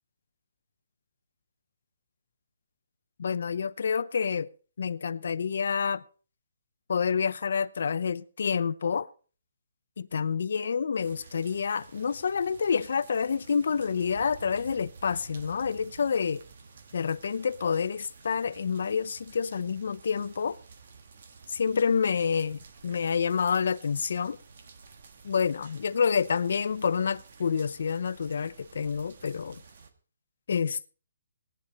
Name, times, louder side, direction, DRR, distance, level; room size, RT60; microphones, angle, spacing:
voice 1, 3.2-4.5 4.8-6.0 6.9-9.1 10.0-16.4 16.9-20.6 21.5-24.4 25.2-29.6 30.5-30.9, left 6 dB, 50° left, 0.6 m, -28 dB
sound 1, 11.0-29.9, right 5 dB, 45° right, 1.5 m, -51 dB
17.5 x 10.0 x 4.2 m
hypercardioid pair, 175°, 0 cm